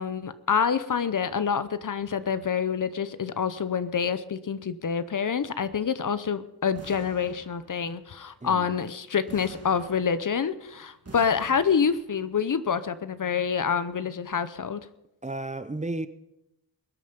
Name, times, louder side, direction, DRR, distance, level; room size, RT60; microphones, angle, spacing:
voice 1, 0.0-14.8, left 6 dB, 50° left, 0.7 m, -27 dB
sound 1, 6.7-8.0 9.3-10.5 11.0-12.2, right 3 dB, 35° right, 2.3 m, -47 dB
voice 2, 8.4-8.8 15.2-16.1, right 2 dB, 20° right, 0.7 m, -33 dB
21.0 x 9.1 x 5.3 m
wide cardioid pair, 100°, 40 cm